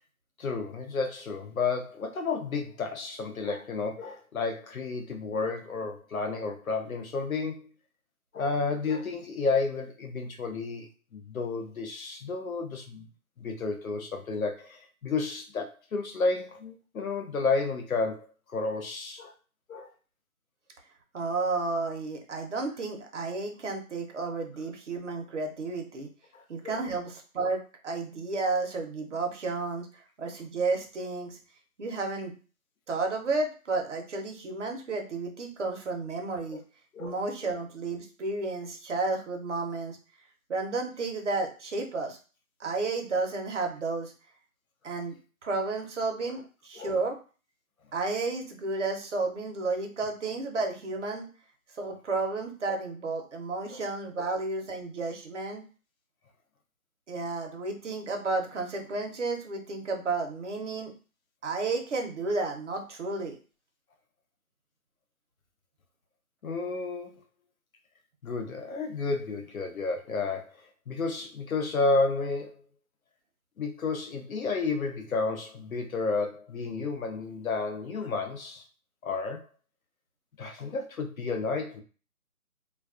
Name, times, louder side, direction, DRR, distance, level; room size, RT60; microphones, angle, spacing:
voice 1, 0.4-7.7 8.3-13.1 13.4-19.3 19.7-19.9 26.3-26.8 36.9-37.1 37.4-37.5 46.8-46.9 53.7-53.8 54.2-54.3 66.4-67.2 68.2-70.6 70.9-72.5 73.6-78.6 79.0-79.4 80.4-81.8, left 3 dB, 70° left, 4 dB, 0.7 m, -31 dB
voice 2, 21.1-26.1 26.5-31.4 31.8-32.3 32.9-36.6 37.0-40.0 40.5-42.2 42.6-44.1 44.8-45.2 45.4-47.2 47.9-51.3 51.8-55.6 57.1-60.9 61.4-63.4, right 3 dB, 55° right, 2 dB, 0.7 m, -32 dB
2.3 x 2.2 x 2.4 m, 0.36 s
figure-of-eight pair, 160°, 44 cm